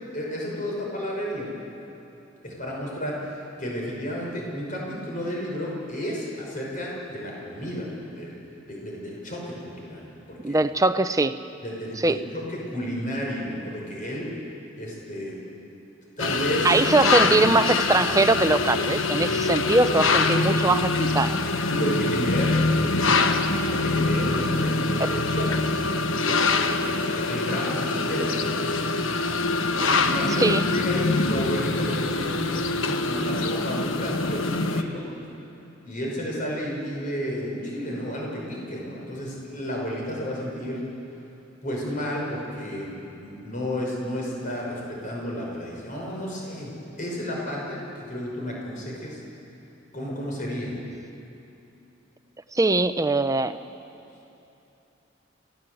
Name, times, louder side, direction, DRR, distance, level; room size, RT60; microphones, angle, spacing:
voice 1, 0.1-1.5 2.4-8.4 8.7-10.6 11.6-14.3 14.8-15.4 16.2-16.8 21.7-23.3 23.7-25.5 26.1-28.6 29.7-30.5 30.7-35.1 35.8-40.8 41.6-46.7 47.0-49.2 49.9-50.8, equal, 45° left, -2 dB, 5.3 m, -32 dB
voice 2, 10.4-11.4 12.0-12.2 16.6-21.4 30.4-30.6 52.5-53.6, right 2 dB, 15° right, 10 dB, 0.7 m, -21 dB
sound 1, 16.2-34.8, left 3 dB, 85° left, 1.1 m, -24 dB
27.5 x 17.0 x 7.9 m, 2.9 s
head